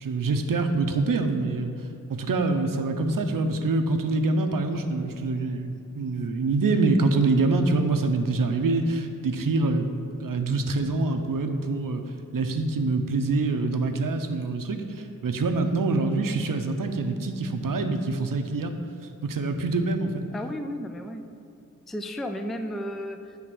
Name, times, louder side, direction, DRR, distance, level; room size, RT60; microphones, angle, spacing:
voice 1, 0.0-1.7 2.1-12.0 12.3-18.7 19.2-20.2, right 3 dB, 75° right, 6 dB, 0.7 m, -25 dB
voice 2, 20.3-21.2 21.9-23.4, equal, ahead, 7 dB, 0.3 m, -33 dB
9.2 x 3.6 x 6.0 m, 2.7 s
wide cardioid pair, 100°, 33 cm